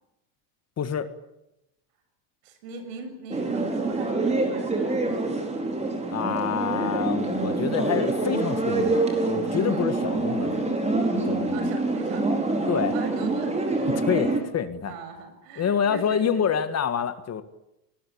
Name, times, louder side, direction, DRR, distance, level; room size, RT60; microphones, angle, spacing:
voice 1, 0.8-1.1 6.1-11.7 12.7-13.0 14.0-14.9 15.6-17.4, left 8 dB, 30° left, 11 dB, 1.8 m, -27 dB
voice 2, 2.4-5.2 11.5-13.6 14.9-16.3, right 4 dB, 75° right, 8 dB, 7.3 m, -40 dB
sound 1, 3.3-14.4, right 2 dB, 15° right, 4.8 m, -26 dB
28.0 x 20.0 x 8.7 m, 0.91 s
supercardioid pair, 130°, 49 cm